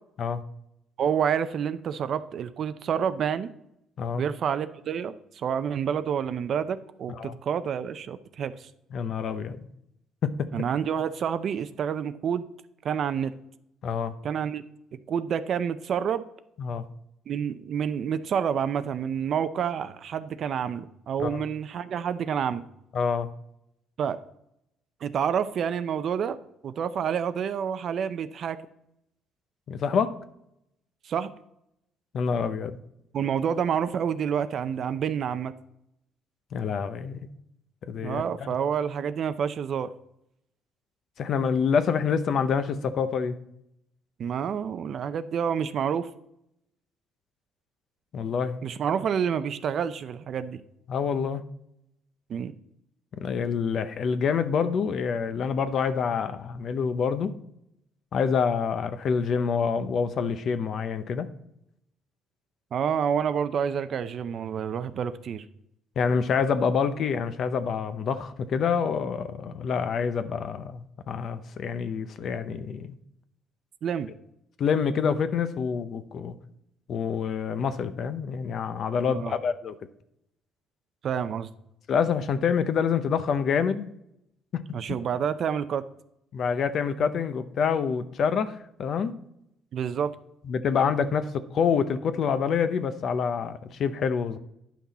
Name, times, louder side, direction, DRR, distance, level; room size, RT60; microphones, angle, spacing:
voice 1, 1.0-3.5 4.1-8.7 10.5-12.5 12.8-13.3 14.2-14.6 15.1-16.2 17.3-22.6 24.0-24.2 25.0-26.4 26.6-28.6 31.0-31.3 33.1-35.5 38.0-39.9 44.2-46.1 48.6-50.6 52.3-52.5 62.7-65.4 73.8-74.1 79.1-79.3 81.0-81.5 84.7-85.8 89.7-90.1, right 8 dB, 45° right, 12 dB, 0.5 m, -28 dB
voice 2, 8.9-9.6 10.2-10.5 13.8-14.1 16.6-16.8 21.2-21.4 22.9-23.3 29.7-30.1 32.1-32.8 36.5-37.2 37.9-38.2 41.2-43.4 48.1-48.6 50.9-51.4 53.2-57.3 58.1-61.3 66.0-72.9 74.6-76.3 76.9-79.7 81.9-83.9 84.5-84.6 86.3-89.1 90.5-94.4, left 6 dB, 45° left, 11 dB, 0.7 m, -27 dB
10.0 x 6.0 x 4.1 m, 0.78 s
cardioid pair, 150°, 0 cm